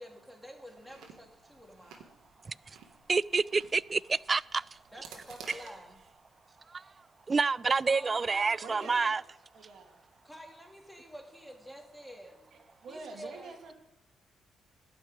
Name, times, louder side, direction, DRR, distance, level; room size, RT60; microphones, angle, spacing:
voice 1, 0.0-2.1 4.9-6.0 7.8-9.1 10.2-12.4 12.9-13.6, equal, ahead, 2.8 m, -49 dB
Chewing mastication, 0.7-6.1, right 6 dB, 90° right, 1.7 m, -54 dB
voice 2, 3.1-4.6 6.7-6.9 7.3-9.2, right 4 dB, 30° right, 0.3 m, -28 dB
voice 3, 8.6-9.1 9.5-10.0 12.2-13.7, right 4 dB, 70° right, 2.6 m, -47 dB
12.5 x 5.9 x 9.1 m
cardioid pair, 90°, 0 cm